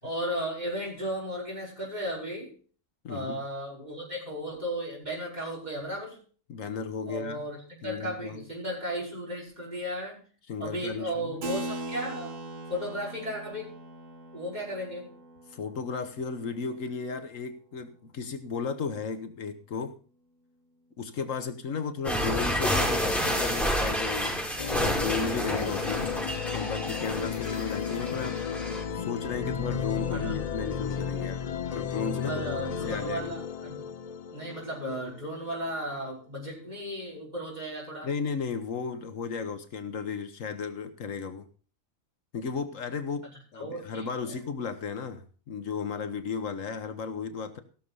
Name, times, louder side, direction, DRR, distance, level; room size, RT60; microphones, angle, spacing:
voice 1, 0.0-2.5 3.1-6.2 7.1-10.2 10.6-12.3 12.7-13.7 14.3-15.1 30.1-30.5 31.7-31.8 32.3-33.8 34.3-38.1 43.6-44.4, equal, 30° right, -3 dB, 5.4 m, -35 dB
voice 2, 3.0-3.4 6.5-7.4 7.8-8.4 10.5-11.4 15.5-19.9 21.0-24.4 24.7-26.1 26.5-31.4 31.7-32.4 32.8-33.3 38.0-41.5 42.3-47.6, left 5 dB, 75° left, 9 dB, 1.5 m, -34 dB
Keyboard (musical), 11.4-17.4, right 1 dB, 70° right, 2.0 m, -41 dB
sound 1, 22.0-28.8, equal, ahead, 5.2 m, -29 dB
sound 2, 24.6-36.0, left 7 dB, 55° left, 0.4 m, -34 dB
16.0 x 6.7 x 5.4 m, 0.40 s
omnidirectional pair, 1.4 m